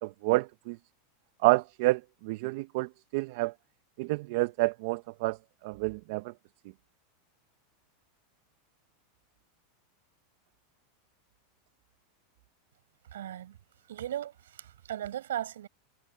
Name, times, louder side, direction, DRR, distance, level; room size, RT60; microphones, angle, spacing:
voice 1, 0.0-0.8 1.4-3.5 4.0-5.4 5.6-6.3, right 21 dB, 65° right, 0.8 m, -29 dB
voice 2, 13.1-13.6 13.9-15.7, right 11 dB, 85° right, 6.5 m, -37 dB
hypercardioid pair, 115°, 0 cm